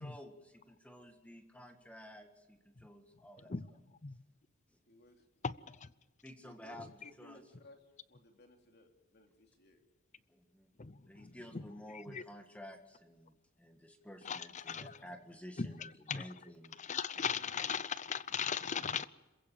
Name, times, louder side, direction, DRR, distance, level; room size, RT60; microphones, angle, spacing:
voice 1, 0.0-3.8 6.2-6.9 7.2-7.4 10.3-10.7 11.0-16.8, equal, 5° left, 1.8 m, -52 dB
voice 2, 4.9-5.3 6.4-6.8 7.0-9.8, left 2 dB, 55° left, 3.1 m, -60 dB
voice 3, 10.8-11.6 12.1-12.2 14.2-15.0 15.6-16.2 16.8-19.1, left 6 dB, 35° left, 0.7 m, -38 dB
27.0 x 15.5 x 7.5 m
head